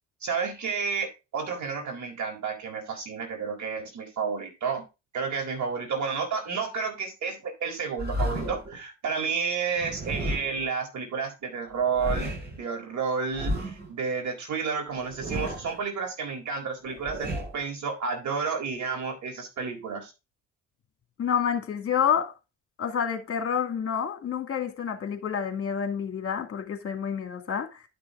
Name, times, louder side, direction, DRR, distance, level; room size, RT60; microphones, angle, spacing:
voice 1, 0.2-4.9 5.1-20.1, right 5 dB, 70° right, 4.0 m, -31 dB
sound 1, 8.0-8.7 9.8-10.7 11.7-12.6 13.3-13.9 14.9-15.8 16.8-17.6, equal, 30° right, 6.7 m, -32 dB
voice 2, 21.2-22.3 22.8-27.8, left 8 dB, 50° left, 2.3 m, -28 dB
11.5 x 6.1 x 3.7 m
cardioid pair, 90°, 30 cm